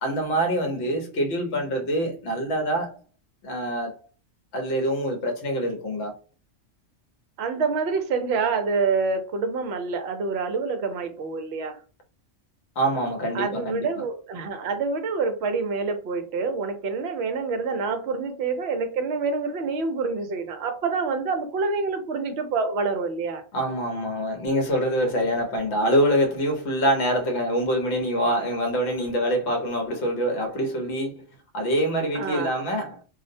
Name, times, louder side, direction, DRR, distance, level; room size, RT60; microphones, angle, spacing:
voice 1, 0.0-3.0 3.4-3.9 4.5-6.1 12.8-14.0 23.5-31.2 31.5-33.0, equal, 60° left, 1.0 m, -25 dB
voice 2, 7.4-11.8 13.3-23.4 32.1-32.6, right 4 dB, 65° right, 0.7 m, -27 dB
2.5 x 2.0 x 2.6 m
omnidirectional pair, 1.3 m